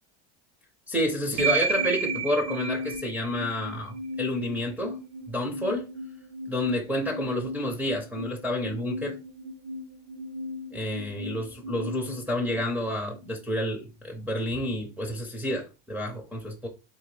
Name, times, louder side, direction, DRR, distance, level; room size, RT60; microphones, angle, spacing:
voice 1, 0.9-5.0 5.3-5.9 6.5-9.2 10.7-16.7, left 1 dB, 5° right, 0.5 m, -29 dB
sound 1, 1.4-13.4, right 3 dB, 45° right, 0.6 m, -34 dB
3.8 x 2.8 x 3.1 m
cardioid pair, 150°, 35 cm